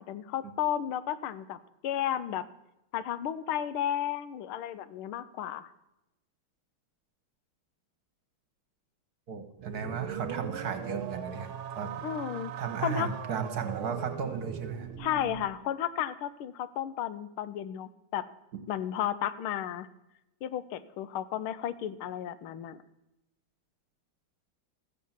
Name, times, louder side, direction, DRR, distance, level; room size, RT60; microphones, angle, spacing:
voice 1, 0.0-1.6 1.8-2.4 2.9-5.7 12.0-12.5 12.8-13.1 15.0-18.2 18.7-19.9 20.4-22.8, left 10 dB, 90° left, 14 dB, 1.5 m, -33 dB
voice 2, 9.3-11.9 12.6-14.9, right 6 dB, 50° right, 7 dB, 1.4 m, -35 dB
sound 1, 9.6-15.5, right 10 dB, 90° right, 1.6 m, -39 dB
14.0 x 7.8 x 7.2 m, 0.90 s
omnidirectional pair, 2.3 m